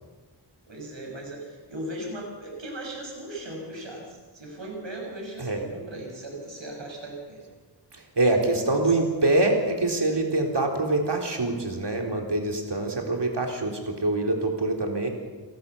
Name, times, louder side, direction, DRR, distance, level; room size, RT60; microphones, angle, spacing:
voice 1, 0.7-7.4 8.6-9.0, right 1 dB, 85° right, 0 dB, 6.4 m, -38 dB
voice 2, 7.9-15.1, right 2 dB, 65° right, 2 dB, 3.8 m, -25 dB
29.0 x 13.5 x 6.8 m, 1.4 s
wide cardioid pair, 70°, 44 cm